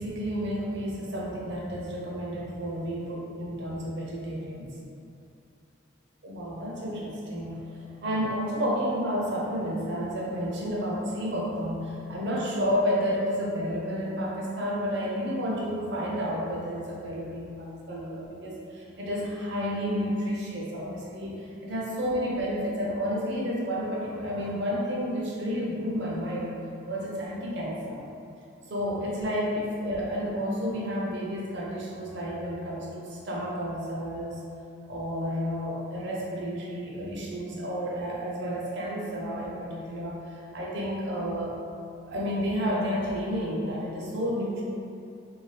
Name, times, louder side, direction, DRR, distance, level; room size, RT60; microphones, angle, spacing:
voice 1, 0.0-4.8 6.2-26.5 26.9-28.0 28.7-34.4 34.9-41.5 42.0-44.6, equal, 55° right, -4 dB, 0.5 m, -31 dB
2.7 x 2.2 x 3.2 m, 2.5 s
head